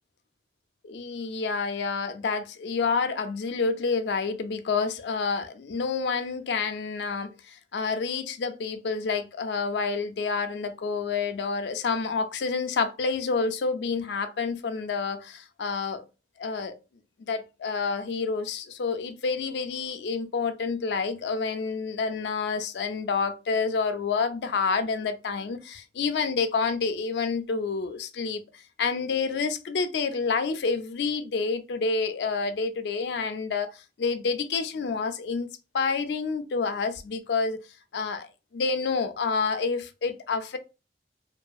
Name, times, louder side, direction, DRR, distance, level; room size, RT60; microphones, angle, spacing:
voice 1, 0.8-16.0 16.4-16.8 17.2-35.5 35.7-37.6 37.9-40.6, left 4 dB, 75° left, 0.4 m, -28 dB
2.6 x 2.3 x 2.3 m
head